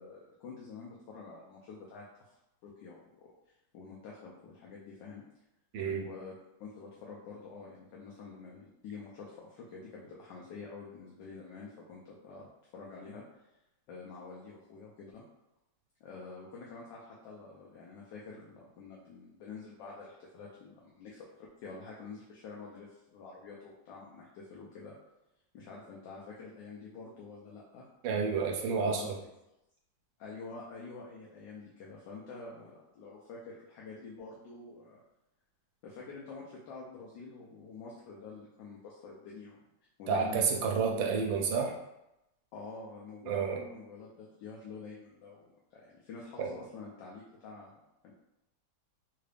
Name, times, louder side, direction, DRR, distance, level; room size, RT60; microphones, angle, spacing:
voice 1, 0.0-2.3 2.6-3.3 3.7-5.2 5.9-6.3 6.6-12.5 12.7-13.2 13.9-15.2 16.0-21.3 21.6-25.0 25.5-27.9 28.7-29.1 30.2-35.0 35.8-39.6 40.0-41.3 42.5-45.4 45.7-47.8 48.0-48.1, left 4 dB, 75° left, -4 dB, 1.3 m, -47 dB
voice 2, 5.7-6.1 28.0-29.2 40.1-41.7 43.3-43.6 46.4-46.5, right 5 dB, 90° right, 1 dB, 1.3 m, -30 dB
3.7 x 2.4 x 3.3 m, 0.89 s
omnidirectional pair, 2.0 m